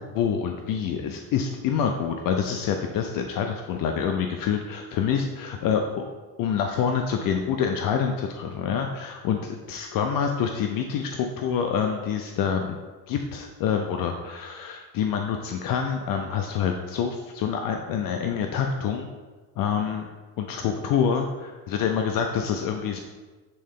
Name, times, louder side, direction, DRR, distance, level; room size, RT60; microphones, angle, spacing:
voice 1, 0.1-6.1 6.4-12.8 13.1-19.1 19.6-20.1 20.4-23.0, left 7 dB, 55° left, 4 dB, 0.5 m, -26 dB
7.7 x 3.7 x 3.6 m, 1.3 s
cardioid pair, 150°, 42 cm